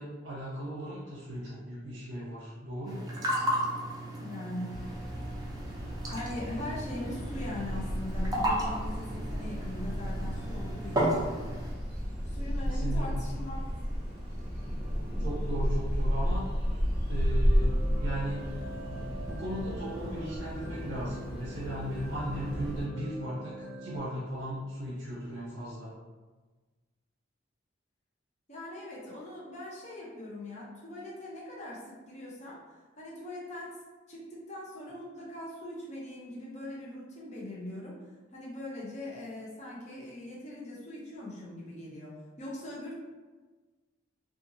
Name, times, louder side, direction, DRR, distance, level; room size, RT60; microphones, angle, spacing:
voice 1, 0.0-3.0 12.6-13.2 15.2-16.5 17.1-17.7 18.0-23.5 23.8-25.9, right 1 dB, 70° right, -7 dB, 0.6 m, -37 dB
sound 1, 2.8-11.7, right 1 dB, 20° right, 0.4 m, -34 dB
voice 2, 4.2-5.1 6.1-11.2 12.2-13.6 28.5-33.8 34.1-38.0 38.3-43.0, left 1 dB, 35° left, -6 dB, 0.6 m, -41 dB
sound 2, 4.7-22.8, equal, 5° right, 1.1 m, -32 dB
sound 3, 17.5-24.0, right 1 dB, 85° left, 0.7 m, -44 dB
2.8 x 2.4 x 2.6 m, 1.3 s
head